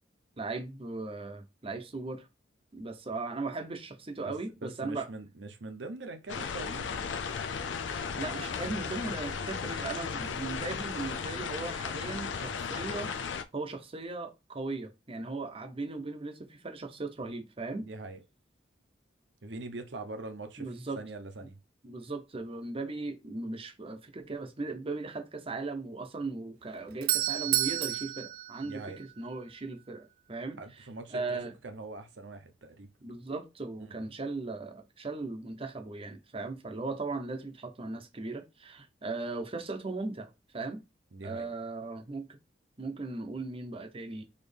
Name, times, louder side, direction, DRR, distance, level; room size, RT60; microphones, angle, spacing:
voice 1, 0.4-2.3 2.7-5.1 7.8-13.1 13.5-17.9 20.6-21.0 21.8-30.6 31.1-31.5 33.0-40.8 41.2-42.3 42.8-44.2, right 3 dB, 30° right, 0.7 m, -38 dB
voice 2, 4.6-7.1 17.8-18.2 19.4-21.6 28.6-29.0 30.6-32.9 33.8-34.1 41.1-41.5, right 2 dB, 70° right, 0.8 m, -43 dB
sound 1, 6.3-13.4, left 6 dB, 75° left, 0.5 m, -35 dB
Doorbell, 26.6-29.5, right 15 dB, 55° right, 0.3 m, -31 dB
4.1 x 3.0 x 3.3 m
head